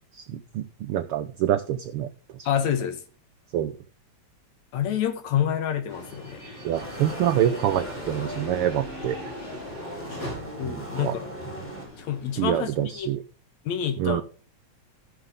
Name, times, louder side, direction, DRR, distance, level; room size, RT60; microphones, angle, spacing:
voice 1, 0.1-2.1 2.4-2.5 3.5-3.7 6.6-9.2 10.7-11.1 12.4-13.2 14.0-14.2, right 11 dB, 90° right, 1.2 m, -26 dB
voice 2, 2.5-3.0 4.7-6.4 10.6-11.3 12.0-13.1 13.7-14.2, left 9 dB, 75° left, 2.5 m, -27 dB
sound 1, 5.9-13.0, left 1 dB, 45° left, 6.9 m, -40 dB
sound 2, 6.7-11.9, equal, 5° left, 2.8 m, -39 dB
15.0 x 6.8 x 3.6 m
omnidirectional pair, 3.3 m